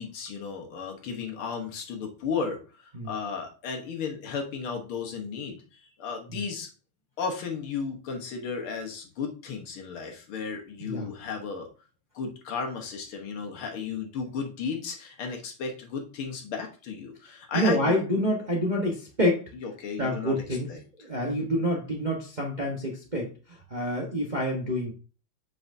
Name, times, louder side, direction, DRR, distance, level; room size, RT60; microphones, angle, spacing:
voice 1, 0.0-6.7 7.2-11.7 12.2-18.0 19.6-20.3 20.7-20.8 21.2-21.5, left 5 dB, 75° left, 2 dB, 2.0 m, -34 dB
voice 2, 17.5-19.5 20.0-24.9, equal, 30° right, -2 dB, 0.8 m, -28 dB
7.6 x 5.7 x 2.7 m, 0.36 s
omnidirectional pair, 2.4 m